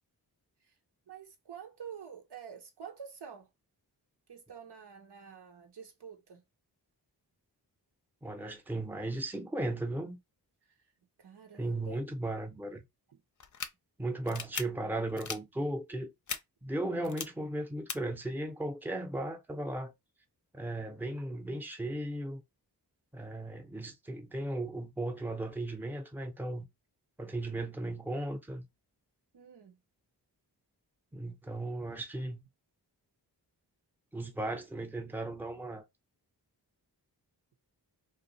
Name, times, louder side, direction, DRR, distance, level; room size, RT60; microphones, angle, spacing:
voice 1, 1.1-3.5 4.3-6.4 11.2-12.0 29.3-29.7, right 7 dB, 75° right, 1.0 m, -48 dB
voice 2, 8.2-10.2 11.5-12.8 14.0-16.1 16.6-19.9 20.5-22.4 23.1-26.7 27.2-28.6 31.1-32.4 34.1-35.8, right 1 dB, 5° right, 0.7 m, -36 dB
sound 1, 13.4-13.7 14.3-14.6 15.2-15.4 16.3-16.4 17.0-17.2 17.9-18.0, left 6 dB, 45° left, 0.6 m, -37 dB
2.6 x 2.4 x 4.0 m
wide cardioid pair, 65°, 41 cm